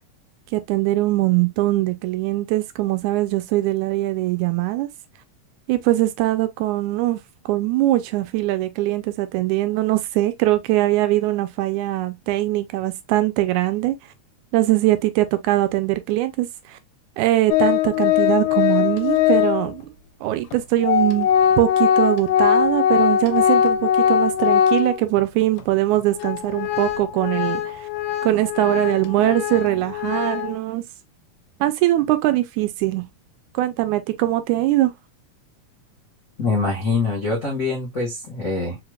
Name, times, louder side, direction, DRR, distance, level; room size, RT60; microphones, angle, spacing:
voice 1, 0.5-4.9 5.7-14.0 14.5-16.8 17.2-19.9 20.2-21.3 21.6-27.9 28.2-30.8 31.6-33.1 33.5-34.9, right 16 dB, 80° right, 1.9 m, -21 dB
Organ, 17.5-19.8 20.5-20.6 20.8-25.2 25.6-25.7 26.2-30.5, left 9 dB, 90° left, 2.2 m, -20 dB
voice 2, 36.4-38.8, left 3 dB, 70° left, 0.7 m, -24 dB
4.9 x 3.3 x 2.2 m
omnidirectional pair, 3.5 m